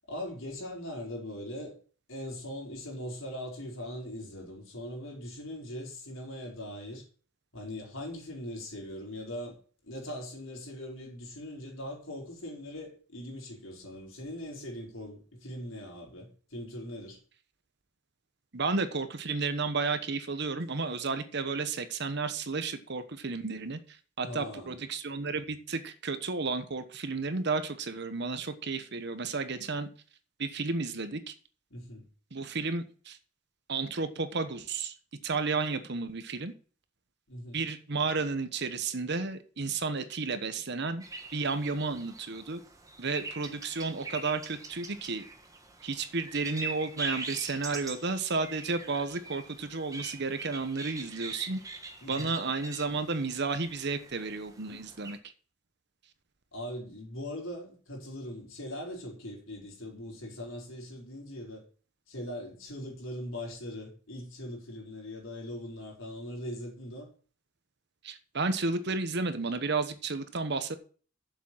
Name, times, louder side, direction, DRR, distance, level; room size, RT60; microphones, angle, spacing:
voice 1, 0.1-1.7 2.1-7.0 7.5-9.6 9.8-17.2 24.2-24.7 31.7-32.1 37.3-37.6 52.0-52.3 56.5-61.6 62.1-67.1, left 1 dB, 85° left, 4.4 m, -40 dB
voice 2, 18.5-29.9 30.4-31.3 32.3-33.2 33.7-34.9 35.2-36.5 37.5-41.0 41.3-42.6 43.0-45.2 45.8-51.6 52.1-55.2 68.0-70.8, right 4 dB, 55° right, 1.1 m, -32 dB
sound 1, 41.0-55.2, right 3 dB, 15° right, 1.3 m, -43 dB
7.3 x 7.3 x 7.6 m
head